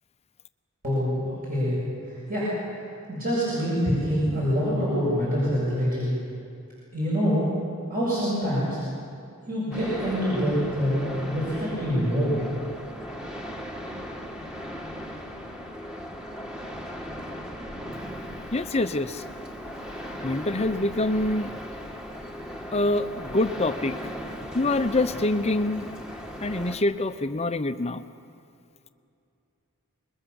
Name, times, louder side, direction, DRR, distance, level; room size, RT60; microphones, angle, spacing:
voice 1, 0.8-1.8 2.3-2.5 3.1-6.1 6.9-7.5 7.9-8.8 9.5-12.4, equal, 40° right, -8 dB, 7.6 m, -25 dB
sound 1, 9.7-26.8, equal, 5° right, 1.8 m, -37 dB
voice 2, 18.5-19.2 20.2-21.5 22.7-23.9 24.5-25.9 26.4-28.0, left 2 dB, 30° left, 10 dB, 0.8 m, -25 dB
27.0 x 21.5 x 7.1 m, 2.6 s
head